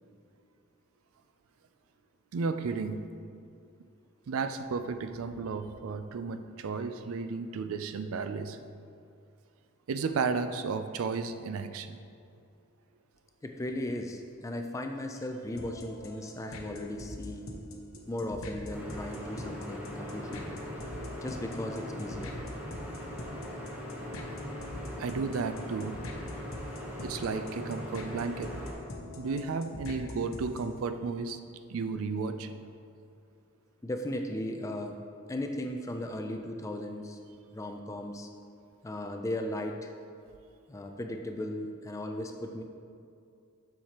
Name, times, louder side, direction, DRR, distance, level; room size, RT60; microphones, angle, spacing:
voice 1, 2.3-3.0 4.3-8.6 9.9-12.0 25.0-26.0 27.0-28.6 29.2-31.4 31.7-32.5, right 4 dB, 80° right, 10 dB, 0.4 m, -33 dB
voice 2, 13.4-17.5 18.1-20.6 21.2-22.4 33.8-35.0 35.3-37.2 37.5-38.3 38.8-39.9 40.7-42.6, left 1 dB, 15° left, 4 dB, 0.3 m, -36 dB
sound 1, 15.6-30.8, left 1 dB, 75° left, 0.8 m, -44 dB
sound 2, 18.7-28.7, equal, 10° right, 0.9 m, -41 dB
7.3 x 6.5 x 2.9 m, 2.4 s
head